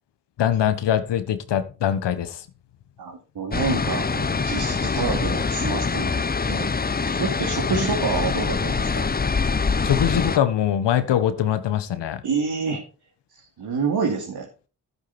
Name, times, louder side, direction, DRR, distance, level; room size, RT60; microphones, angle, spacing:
voice 1, 0.4-2.4 9.8-12.2, left 10 dB, 80° left, 11 dB, 1.4 m, -22 dB
voice 2, 3.0-6.7 7.0-9.1 12.2-12.8 13.6-14.5, right 5 dB, 65° right, -1 dB, 2.9 m, -27 dB
sound 1, 3.5-10.4, left 4 dB, 20° left, 0.8 m, -24 dB
11.5 x 9.8 x 4.3 m, 0.35 s
supercardioid pair, 50°, 41 cm